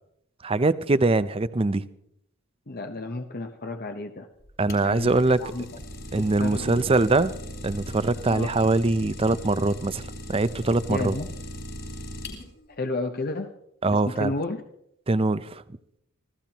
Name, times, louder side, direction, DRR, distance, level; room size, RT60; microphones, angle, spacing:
voice 1, 0.4-1.8 4.6-5.4 6.1-7.3 7.6-10.0 10.3-11.2 13.8-14.3 15.1-15.6, right 2 dB, 25° right, 0.5 m, -23 dB
voice 2, 2.7-4.3 4.8-5.1 5.4-5.7 6.2-6.8 8.3-8.5 10.9-11.3 12.7-13.5 13.9-14.6, left 2 dB, 45° left, 0.8 m, -32 dB
Idling, 4.4-12.7, equal, 60° left, 4.7 m, -39 dB
25.5 x 15.5 x 2.9 m
head